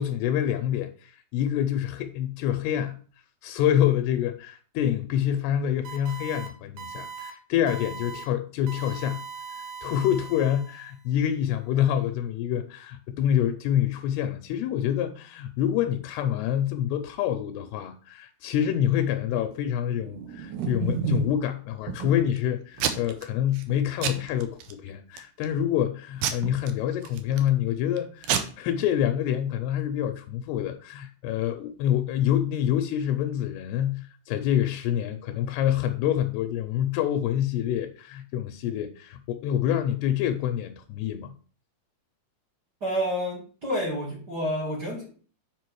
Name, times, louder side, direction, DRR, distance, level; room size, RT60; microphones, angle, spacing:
voice 1, 0.0-3.0 3.4-9.2 9.8-41.3, left 10 dB, 85° left, 2.6 m, -27 dB
sound 1, 5.8-6.5 6.8-7.3 7.7-8.2 8.7-11.0, right 6 dB, 65° right, 1.9 m, -40 dB
Packing tape duct tape / Tearing, 20.0-21.4 21.9-22.4 22.8-23.2 23.6-23.7 24.0-24.7 25.2-25.5 26.2-27.5 28.0-28.1 28.2-28.4, right 9 dB, 90° right, 1.7 m, -29 dB
voice 2, 42.8-45.1, equal, 40° right, 1.5 m, -29 dB
7.5 x 4.9 x 4.7 m
omnidirectional pair, 4.6 m